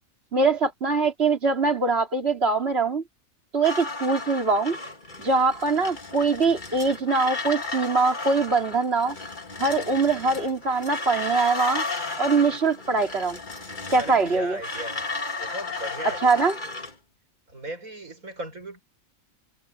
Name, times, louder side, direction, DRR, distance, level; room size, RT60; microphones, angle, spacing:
voice 1, 0.3-3.0 3.5-4.8 5.2-9.2 9.6-11.8 12.2-13.4 13.9-14.6 16.2-16.5, right 4 dB, 50° right, 3.6 m, -23 dB
sound 1, 3.6-17.0, left 3 dB, 35° left, 2.1 m, -34 dB
voice 2, 13.9-15.0 15.4-16.4 17.5-18.8, equal, 85° right, 7.3 m, -37 dB
omnidirectional pair, 1.4 m